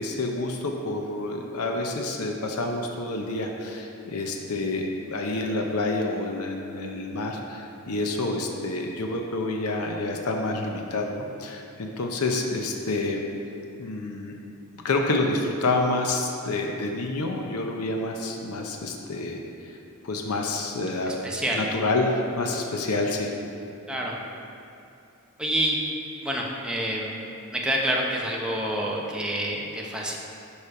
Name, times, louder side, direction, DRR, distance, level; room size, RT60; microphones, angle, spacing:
voice 1, 0.0-13.2 13.8-14.4 14.8-19.8 20.0-21.1 21.4-23.3, left 2 dB, 90° left, 2 dB, 0.7 m, -28 dB
voice 2, 21.1-21.6 23.9-24.1 25.4-25.8 26.2-27.1 27.5-30.2, right 1 dB, 5° right, -2 dB, 0.7 m, -27 dB
7.1 x 5.0 x 4.9 m, 2.6 s
head